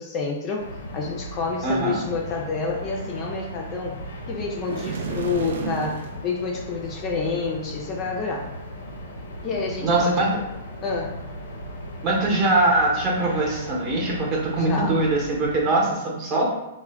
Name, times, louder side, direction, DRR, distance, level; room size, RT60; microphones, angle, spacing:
voice 1, 0.0-3.9 4.3-8.5 9.4-10.4 10.8-11.1 14.6-15.0, left 4 dB, 30° left, 0 dB, 0.4 m, -28 dB
sound 1, 0.6-15.7, equal, 85° left, 0.6 m, -37 dB
voice 2, 1.6-2.0 9.8-10.3 12.0-16.4, right 2 dB, 30° right, -2 dB, 0.7 m, -22 dB
sound 2, 4.6-6.2, right 5 dB, 80° right, 0.3 m, -31 dB
2.2 x 2.1 x 3.3 m, 0.91 s
hypercardioid pair, 145°, 0 cm